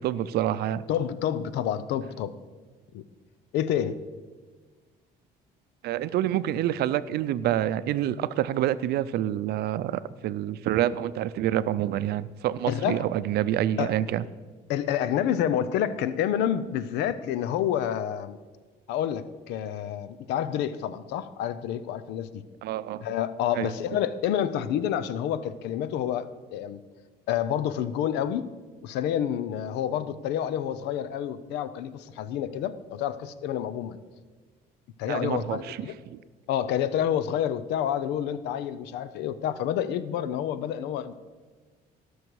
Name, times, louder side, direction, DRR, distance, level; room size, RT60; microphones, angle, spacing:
voice 1, 0.0-0.8 5.8-14.2 22.6-23.0 23.5-23.7 35.1-36.2, right 12 dB, 70° right, 15 dB, 0.5 m, -27 dB
voice 2, 0.9-2.3 2.9-3.0 3.5-4.0 12.7-13.0 13.8-13.9 14.7-18.4 18.9-22.4 23.0-26.8 27.3-28.5 28.8-34.0 35.0-36.0 36.5-41.1, left 10 dB, 90° left, 15 dB, 0.6 m, -28 dB
17.5 x 6.4 x 4.7 m, 1.4 s
cardioid pair, 110°, 17 cm